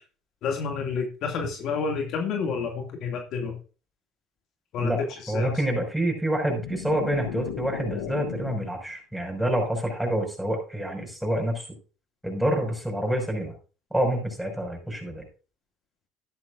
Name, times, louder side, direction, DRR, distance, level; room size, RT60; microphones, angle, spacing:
voice 1, 0.4-3.6 4.7-4.9 5.2-5.5, left 5 dB, 60° left, 3 dB, 2.5 m, -29 dB
voice 2, 5.3-11.7 12.2-13.5 13.9-15.3, right 1 dB, ahead, 2 dB, 5.8 m, -27 dB
sound 1, 6.2-8.8, left 11 dB, 85° left, 1.0 m, -37 dB
13.5 x 10.5 x 2.6 m, 0.36 s
hypercardioid pair, 70°, 0 cm